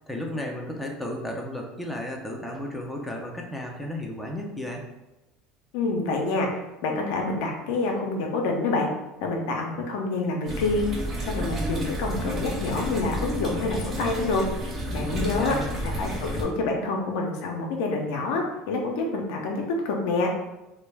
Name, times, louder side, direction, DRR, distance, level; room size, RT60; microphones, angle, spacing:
voice 1, 0.1-4.8 14.9-15.7, left 1 dB, 5° left, 0 dB, 0.5 m, -33 dB
voice 2, 5.7-6.5 6.8-8.9 9.2-10.9 11.2-14.4 14.9-15.6 15.8-20.3, left 3 dB, 75° left, 1 dB, 0.5 m, -27 dB
sound 1, 10.5-16.4, equal, 35° right, 0.7 m, -31 dB
2.2 x 2.1 x 3.2 m, 0.98 s
supercardioid pair, 100°, 0 cm